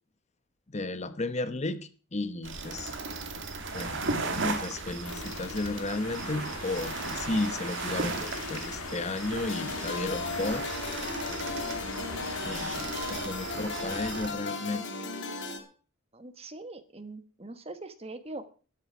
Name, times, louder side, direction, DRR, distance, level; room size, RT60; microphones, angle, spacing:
voice 1, 0.7-2.9 3.7-4.0 4.3-11.2 12.4-14.8, left 2 dB, 30° left, 1.0 m, -34 dB
sound 1, 2.4-14.3, right 3 dB, 60° right, 2.4 m, -36 dB
sound 2, 5.0-12.9, left 5 dB, 80° left, 1.8 m, -42 dB
sound 3, 9.5-15.6, left 3 dB, 55° left, 3.3 m, -36 dB
voice 2, 16.1-18.5, right 2 dB, 30° right, 1.3 m, -42 dB
11.5 x 11.5 x 6.0 m
head